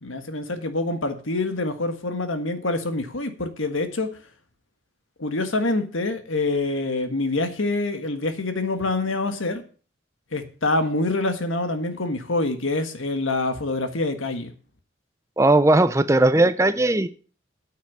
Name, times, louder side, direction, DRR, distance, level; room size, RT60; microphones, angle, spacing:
voice 1, 0.0-4.1 5.2-9.6 10.3-14.5, left 2 dB, 85° left, 8 dB, 1.6 m, -26 dB
voice 2, 15.4-17.1, right 2 dB, 15° right, 13 dB, 0.5 m, -18 dB
9.3 x 6.6 x 7.2 m, 0.39 s
head